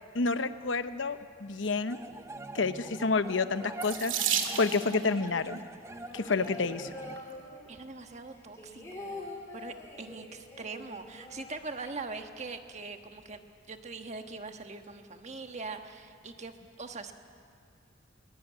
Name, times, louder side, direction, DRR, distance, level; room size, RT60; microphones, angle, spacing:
voice 1, 0.1-2.0 2.5-5.6 6.1-6.9, left 4 dB, 65° left, 11 dB, 0.9 m, -29 dB
sound 1, 1.9-7.2, right 2 dB, 15° right, 0.6 m, -44 dB
Water tap faucet / Sink (filling or washing), 3.8-5.0 6.1-6.5 7.2-7.3 7.6-7.7, right 8 dB, 75° right, 2.2 m, -32 dB
sound 2, 5.8-7.9 8.3-12.2 12.5-12.6 12.9-13.4, left 2 dB, 15° left, 4.7 m, -45 dB
voice 2, 7.7-9.3 9.5-13.4 13.7-17.1, right 3 dB, 35° right, 6 dB, 1.4 m, -42 dB
21.0 x 20.5 x 9.4 m, 2.3 s
head